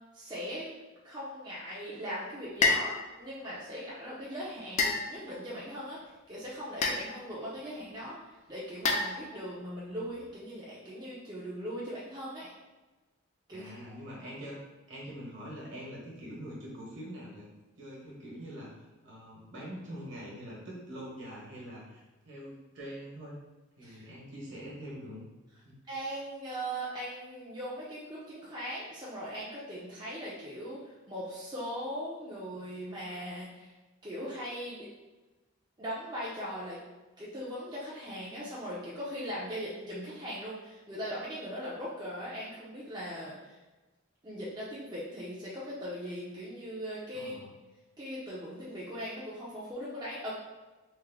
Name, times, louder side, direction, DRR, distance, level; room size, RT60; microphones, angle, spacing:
voice 1, 0.1-0.7 1.0-12.5 13.5-14.0 23.8-24.1 25.9-33.7 34.0-34.9 35.8-36.8 37.2-43.6 44.2-47.3 48.0-50.3, equal, 20° right, -7 dB, 0.5 m, -39 dB
sound 1, 2.6-3.0 4.8-5.4 6.8-7.3 8.8-9.5, left 3 dB, 35° left, 0.3 m, -29 dB
voice 2, 13.5-14.6 14.9-17.5 17.8-18.7 19.0-23.3 23.8-25.2 25.6-25.7 47.1-47.5, equal, 60° right, -5 dB, 1.1 m, -44 dB
3.3 x 2.1 x 3.5 m, 1.2 s
head